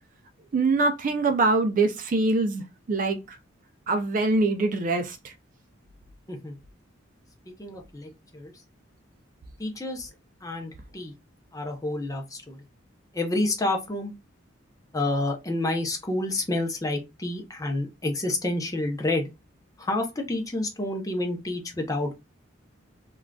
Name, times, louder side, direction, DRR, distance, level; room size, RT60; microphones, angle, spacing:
voice 1, 0.5-3.4 3.9-5.3, right 3 dB, 45° right, 0.4 m, -24 dB
voice 2, 7.6-8.5 9.6-10.1 10.4-11.1 11.5-12.6 13.1-14.1 14.9-19.3 19.8-22.1, left 2 dB, 15° left, 0.6 m, -29 dB
3.6 x 2.3 x 2.2 m
head